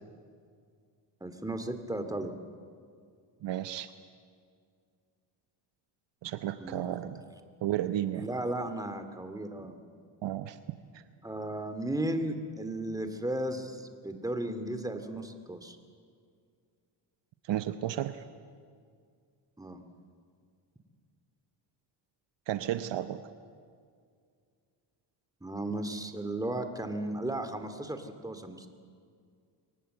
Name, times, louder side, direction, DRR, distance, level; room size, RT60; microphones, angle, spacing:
voice 1, 1.2-2.3 6.6-7.0 8.2-9.8 11.2-15.8 19.6-19.8 25.4-28.7, right 1 dB, 10° right, 8 dB, 2.5 m, -35 dB
voice 2, 3.4-3.9 6.2-7.2 7.6-8.3 10.2-10.6 10.9-11.0 17.5-18.2 22.5-23.2, right 12 dB, 65° right, 10 dB, 1.0 m, -33 dB
23.5 x 19.0 x 7.9 m, 2.2 s
cardioid pair, 80°, 47 cm